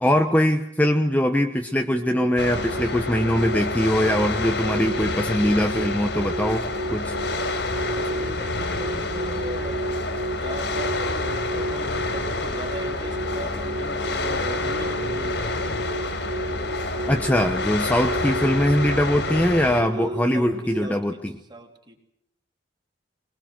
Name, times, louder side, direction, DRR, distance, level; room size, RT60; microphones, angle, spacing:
voice 1, 0.0-6.6 6.9-7.2 17.1-21.3, equal, 10° left, 5 dB, 1.1 m, -22 dB
sound 1, 1.9-21.0, right 1 dB, 55° right, 2.6 m, -32 dB
sound 2, 2.4-19.8, left 2 dB, 70° left, 3.8 m, -29 dB
voice 2, 7.0-9.8 10.3-15.5 19.9-21.2 21.5-22.0, right 1 dB, 25° right, 4 dB, 3.1 m, -40 dB
22.0 x 21.5 x 7.6 m, 0.76 s
head